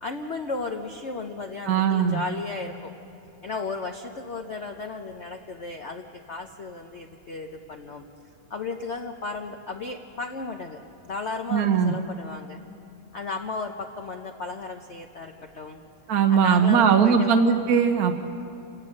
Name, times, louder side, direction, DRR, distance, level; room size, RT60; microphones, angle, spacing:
voice 1, 0.0-2.9 3.4-8.0 8.5-12.6 13.1-15.8 16.3-17.3, left 3 dB, 50° left, 3 dB, 0.9 m, -34 dB
voice 2, 1.7-2.2 11.5-11.9 16.1-18.1, right 7 dB, 55° right, 5 dB, 1.2 m, -20 dB
29.0 x 18.0 x 6.5 m, 2.8 s
omnidirectional pair, 2.2 m